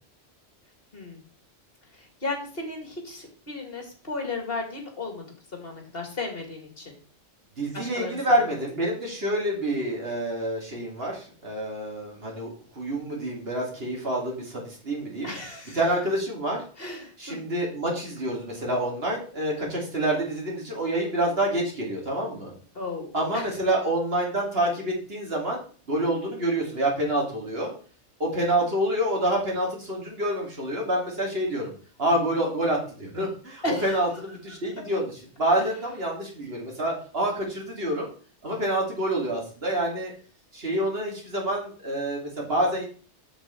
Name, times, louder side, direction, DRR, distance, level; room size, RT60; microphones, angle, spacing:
voice 1, 1.9-5.2 5.5-7.0 7.7-8.2 15.2-15.8 16.8-17.4 22.7-23.5 33.6-34.0 35.6-35.7, left 2 dB, 55° left, 3 dB, 2.5 m, -34 dB
voice 2, 7.6-12.5 12.7-15.3 15.7-16.6 17.2-22.5 23.1-25.6 25.9-27.7 28.2-31.7 32.0-35.1 35.4-38.1 38.4-40.1 40.5-42.9, right 1 dB, 55° right, -1 dB, 2.8 m, -27 dB
7.7 x 7.0 x 4.4 m, 0.41 s
omnidirectional pair, 1.2 m